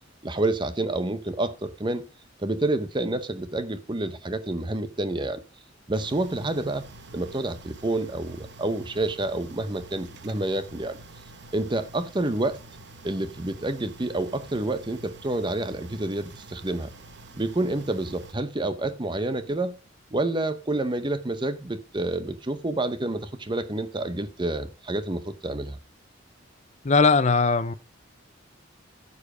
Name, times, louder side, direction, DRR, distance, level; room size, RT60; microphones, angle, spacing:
voice 1, 0.2-2.0 2.4-5.4 5.9-6.9 7.1-11.0 11.5-12.6 13.0-16.9 17.3-19.8 20.1-25.8, right 2 dB, 25° right, 0.8 m, -28 dB
sound 1, 5.9-18.3, right 2 dB, 60° right, 1.0 m, -47 dB
voice 2, 26.8-27.7, left 4 dB, 35° left, 0.6 m, -19 dB
9.7 x 6.9 x 4.9 m
head